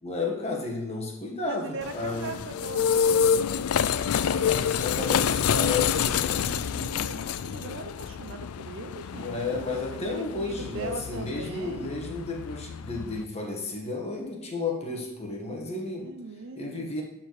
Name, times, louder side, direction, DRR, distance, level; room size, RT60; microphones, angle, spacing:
voice 1, 0.0-2.3 4.3-6.5 9.2-16.1 16.6-17.0, left 3 dB, 30° left, 0 dB, 1.8 m, -32 dB
voice 2, 1.5-3.3 6.2-9.3 10.1-11.9 15.9-17.0, right 3 dB, 65° right, 7 dB, 0.7 m, -40 dB
sound 1, 1.8-13.2, left 7 dB, 85° left, 0.4 m, -28 dB
11.5 x 4.6 x 4.8 m, 0.93 s
head